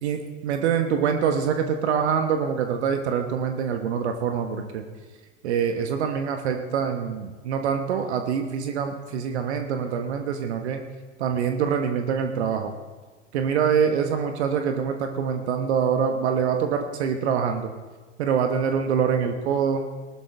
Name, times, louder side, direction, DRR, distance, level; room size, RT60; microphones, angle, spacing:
voice 1, 0.0-4.8 5.4-10.8 11.2-12.7 13.3-17.7 18.2-19.9, right 7 dB, 60° right, 5 dB, 1.3 m, -25 dB
19.0 x 12.0 x 3.5 m, 1.3 s
figure-of-eight pair, 90°, 38 cm